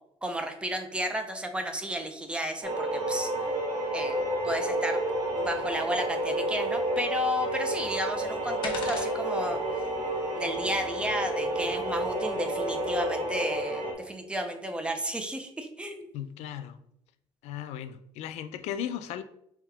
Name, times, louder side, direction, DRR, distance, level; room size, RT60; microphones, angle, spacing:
voice 1, 0.2-3.3 3.9-4.2 4.4-5.0 5.3-9.6 10.4-16.1, equal, 10° right, 6 dB, 0.5 m, -32 dB
sound 1, 2.6-13.9, right 1 dB, 40° right, 1.2 m, -30 dB
sound 2, 7.5-13.0, left 4 dB, 45° left, 0.8 m, -45 dB
voice 2, 16.1-16.8 17.4-19.2, left 10 dB, 80° left, 10 dB, 0.4 m, -36 dB
3.6 x 2.7 x 4.5 m, 0.74 s
cardioid pair, 150°, 11 cm